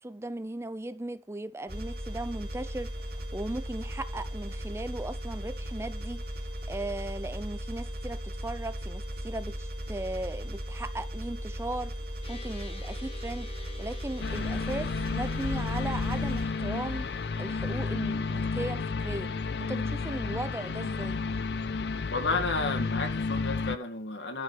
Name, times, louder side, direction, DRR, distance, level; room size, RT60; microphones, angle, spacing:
voice 1, 0.0-6.2 6.7-12.0 12.3-13.5 13.8-17.1 17.4-19.3 19.6-21.2, right 1 dB, 15° right, 0.6 m, -37 dB
sound 1, 1.7-16.5, equal, 60° right, 2.4 m, -37 dB
sound 2, 12.2-23.3, left 5 dB, 35° left, 1.8 m, -50 dB
sound 3, 14.2-23.8, left 4 dB, 65° left, 0.5 m, -31 dB
voice 2, 22.1-24.4, left 3 dB, 90° left, 2.1 m, -31 dB
12.0 x 5.1 x 6.8 m
head